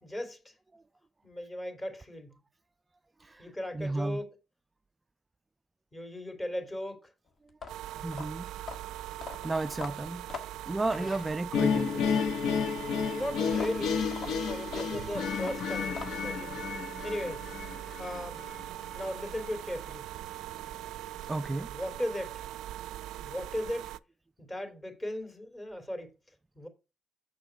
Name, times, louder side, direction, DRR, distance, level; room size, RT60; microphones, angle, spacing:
voice 1, 0.0-0.5 1.2-2.3 3.4-4.3 5.9-7.1 7.9-8.2 11.0-11.1 13.2-14.1 14.5-17.4 18.0-18.4 18.9-20.1 21.7-22.4 23.2-23.9 24.4-26.1 26.5-26.7, left 1 dB, 20° left, 3.1 m, -37 dB
voice 2, 3.2-4.2 8.0-8.5 9.4-10.2 10.7-12.2 21.3-21.7, right 2 dB, 20° right, 0.3 m, -33 dB
sound 1, 7.5-11.8 13.5-16.4, left 5 dB, 50° left, 1.5 m, -44 dB
sound 2, 7.7-24.0, right 13 dB, 90° right, 0.4 m, -41 dB
sound 3, 11.5-18.6, left 6 dB, 75° left, 0.9 m, -31 dB
7.1 x 6.6 x 5.1 m
cardioid pair, 90°, 0 cm